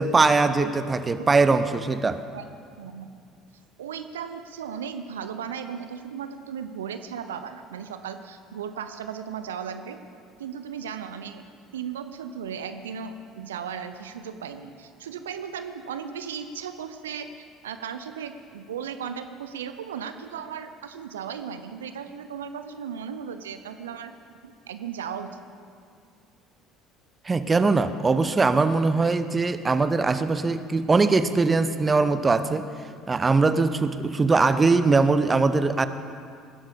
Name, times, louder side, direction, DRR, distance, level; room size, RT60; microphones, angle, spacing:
voice 1, 0.0-2.2 27.2-32.7 33.1-35.9, right 3 dB, 25° right, 12 dB, 0.8 m, -21 dB
voice 2, 2.8-3.1 3.8-10.0 10.4-11.4 11.7-24.1 24.4-25.4, right 7 dB, 80° right, 9 dB, 0.6 m, -36 dB
20.5 x 11.5 x 5.2 m, 2.3 s
figure-of-eight pair, 60°, 0 cm